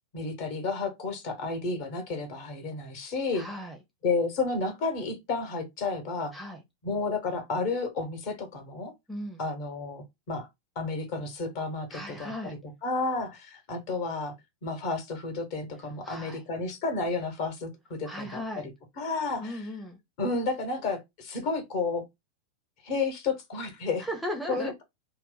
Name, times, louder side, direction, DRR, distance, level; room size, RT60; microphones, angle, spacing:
voice 1, 0.1-3.4 4.0-6.3 6.8-8.9 9.4-10.5 10.7-12.3 12.8-14.3 14.6-18.4 19.0-19.6 20.2-22.0 22.8-24.1 24.5-24.8, left 3 dB, 45° left, 1.1 m, -31 dB
voice 2, 3.3-3.8 6.3-6.6 9.1-9.4 11.9-12.6 16.0-16.4 18.0-18.7 19.4-20.0 24.0-24.7, equal, ahead, 0.6 m, -37 dB
2.6 x 2.1 x 3.9 m
figure-of-eight pair, 90°, 0 cm